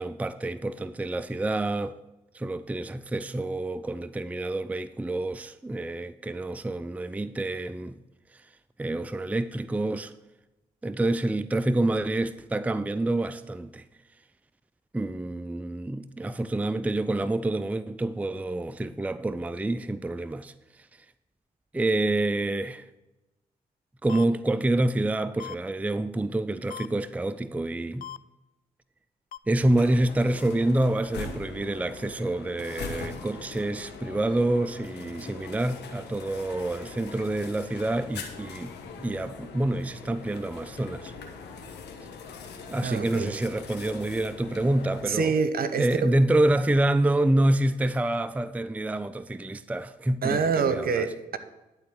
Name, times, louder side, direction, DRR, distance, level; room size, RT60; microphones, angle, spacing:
voice 1, 0.0-2.0 2.3-8.0 8.3-8.4 8.8-10.1 10.8-13.8 14.9-20.5 21.7-22.9 24.0-28.1 29.5-41.1 42.7-45.3 45.8-51.1, right 1 dB, 10° right, 0.4 m, -27 dB
sound 1, 24.1-24.2 25.4-25.5 26.7-26.9 28.0-28.2 29.3-29.4, left 10 dB, 55° left, 0.4 m, -38 dB
sound 2, 29.8-45.0, left 4 dB, 75° left, 1.3 m, -42 dB
voice 2, 42.8-43.3 45.0-46.1 50.2-51.4, right 5 dB, 60° right, 1.0 m, -26 dB
11.5 x 4.0 x 7.7 m
hypercardioid pair, 40°, 18 cm